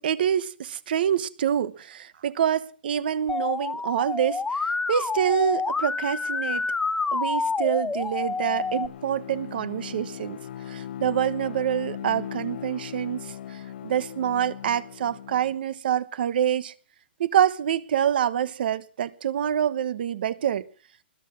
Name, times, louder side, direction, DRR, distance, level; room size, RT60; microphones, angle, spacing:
voice 1, 0.0-6.7 7.1-10.4 10.7-16.7 17.2-20.7, right 9 dB, 60° right, 1.2 m, -26 dB
Musical instrument, 3.3-8.9, left 4 dB, 5° left, 0.7 m, -28 dB
Bowed string instrument, 7.8-15.6, left 10 dB, 60° left, 0.7 m, -39 dB
20.5 x 9.5 x 6.3 m
hypercardioid pair, 155°, 6 cm